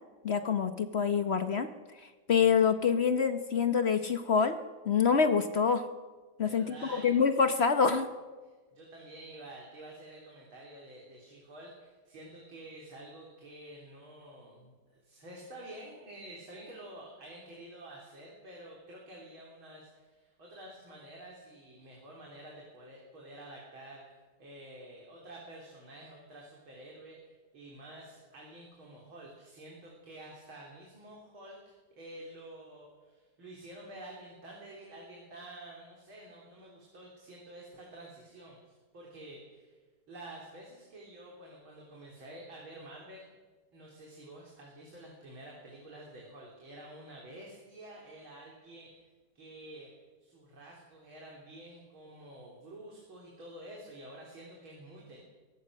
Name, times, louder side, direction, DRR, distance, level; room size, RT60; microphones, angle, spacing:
voice 1, 0.2-1.7 2.3-4.5 4.9-5.8 6.4-6.7 7.0-8.1, left 6 dB, 50° left, 9 dB, 0.8 m, -26 dB
voice 2, 6.4-7.1 8.4-39.8 40.1-43.2 43.7-49.0 49.3-49.9 50.2-55.2, right 1 dB, 85° right, -3 dB, 4.4 m, -49 dB
22.5 x 18.0 x 6.4 m, 1.3 s
omnidirectional pair, 2.2 m